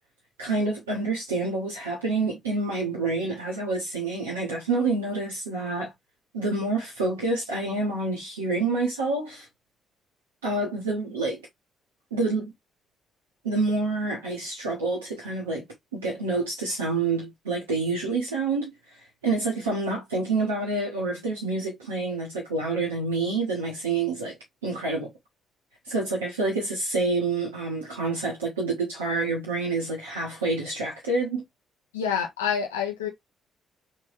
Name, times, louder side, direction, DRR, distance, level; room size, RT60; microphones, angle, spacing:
voice 1, 0.4-5.9 6.3-9.5 10.4-11.4 12.1-12.5 13.4-15.6 15.9-18.7 19.2-24.3 24.6-25.1 25.9-31.4, right 3 dB, 85° right, 1.0 m, -27 dB
voice 2, 31.9-33.1, left 7 dB, 85° left, 1.0 m, -27 dB
3.4 x 3.3 x 3.1 m
figure-of-eight pair, 40°, 0 cm